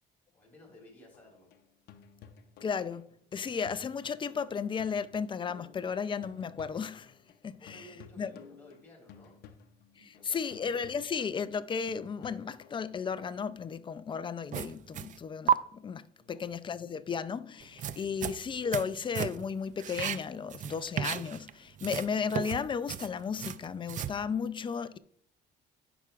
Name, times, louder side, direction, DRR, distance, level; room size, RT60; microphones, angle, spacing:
voice 1, 0.3-1.5 7.6-9.4 9.9-10.6 16.2-16.5, equal, 10° left, 4.1 m, -56 dB
sound 1, 1.1-7.4 7.7-13.1, left 7 dB, 70° left, 0.8 m, -55 dB
voice 2, 2.6-7.2 7.4-7.9 8.2-8.3 10.0-25.0, left 6 dB, 30° left, 0.5 m, -34 dB
sound 2, 14.5-15.2 15.5-15.6 17.6-18.9 19.1-19.5 19.8-21.5 21.8-24.2, right 9 dB, 50° right, 0.4 m, -33 dB
16.0 x 5.9 x 2.4 m
cardioid pair, 110°, 17 cm